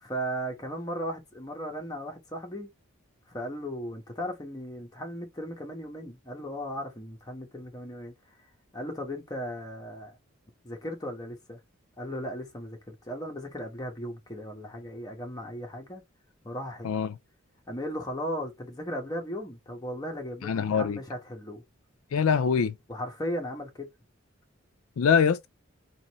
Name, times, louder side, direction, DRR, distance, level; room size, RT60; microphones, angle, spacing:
voice 1, 0.0-2.7 3.3-8.1 8.7-10.2 10.6-11.6 12.0-16.0 16.4-16.9 17.7-21.6 22.9-23.9, equal, 20° left, 1.1 m, -36 dB
voice 2, 16.8-17.1 20.4-21.0 22.1-22.7 25.0-25.5, left 6 dB, 80° left, 0.4 m, -24 dB
4.0 x 3.1 x 3.0 m
head